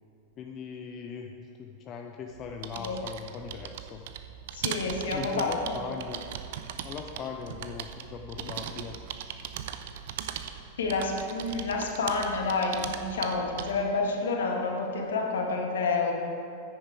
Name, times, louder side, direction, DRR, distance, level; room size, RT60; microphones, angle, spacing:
voice 1, 0.4-4.0 5.1-6.2 6.8-9.0, left 6 dB, 30° left, 3 dB, 0.6 m, -40 dB
sound 1, 2.3-13.9, right 9 dB, 55° right, 0.6 m, -39 dB
voice 2, 4.5-5.7 10.8-16.1, left 3 dB, 65° left, 1 dB, 1.6 m, -29 dB
9.6 x 9.4 x 4.8 m, 2.6 s
figure-of-eight pair, 90°, 0 cm